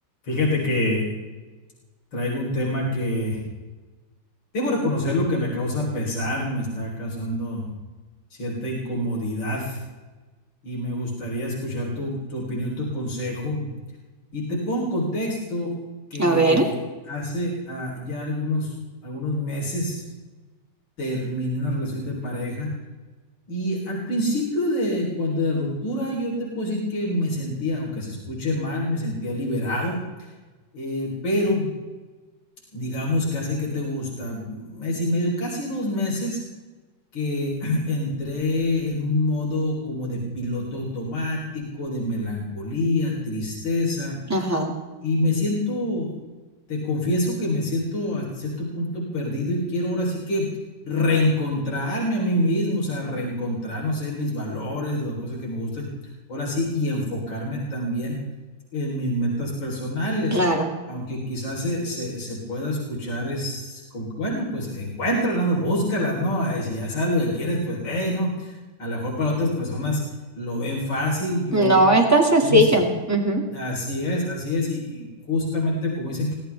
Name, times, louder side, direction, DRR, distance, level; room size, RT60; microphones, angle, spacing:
voice 1, 0.2-1.0 2.1-3.4 4.5-7.7 8.4-9.8 10.6-13.7 14.3-15.7 16.1-16.7 17.1-18.7 19.0-20.0 21.0-22.8 23.5-30.0 30.7-31.7 32.7-36.4 37.1-44.2 45.0-46.1 46.7-50.5 50.8-55.9 56.3-58.2 58.7-60.4 60.9-70.0 70.4-71.9 72.4-72.8 73.5-76.3, left 1 dB, 80° left, -3 dB, 4.5 m, -26 dB
voice 2, 16.2-16.7 44.3-44.8 60.3-60.7 71.5-73.4, right 1 dB, 10° right, 1 dB, 2.2 m, -18 dB
23.0 x 17.5 x 3.5 m, 1.3 s
omnidirectional pair, 2.1 m